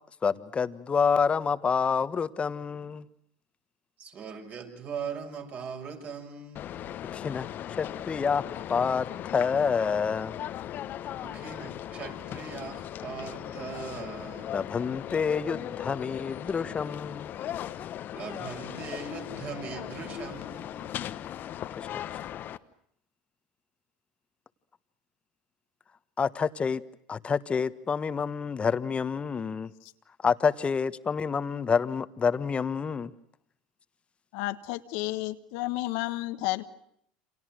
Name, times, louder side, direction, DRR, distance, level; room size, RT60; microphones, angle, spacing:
voice 1, 0.2-3.0 7.1-7.5 7.8-9.1 9.3-10.3 14.5-17.3 21.8-21.9 26.2-26.8 27.1-29.7 30.2-33.1, left 6 dB, 25° left, 13 dB, 1.4 m, -28 dB
voice 2, 4.0-6.9 11.2-14.6 18.1-21.0, right 5 dB, 45° right, 3 dB, 7.1 m, -40 dB
sound 1, 6.6-22.6, left 11 dB, 50° left, 1.2 m, -38 dB
voice 3, 34.3-36.6, left 18 dB, 70° left, 9 dB, 1.3 m, -31 dB
29.0 x 26.5 x 6.4 m, 0.70 s
supercardioid pair, 95°, 4 cm